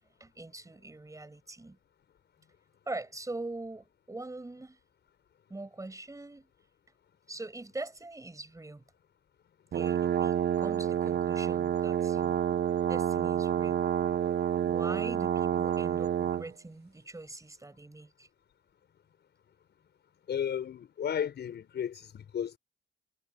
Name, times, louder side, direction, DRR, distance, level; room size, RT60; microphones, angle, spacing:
voice 1, 0.2-1.8 2.9-4.8 5.5-6.5 7.3-8.8 9.7-12.5 12.9-13.9 14.7-18.3, right 2 dB, 15° right, 7.2 m, -42 dB
sound 1, 9.7-16.5, right 9 dB, 55° right, 0.9 m, -29 dB
voice 2, 20.3-22.6, left 8 dB, 60° left, 5.8 m, -34 dB
cardioid pair, 90°, 20 cm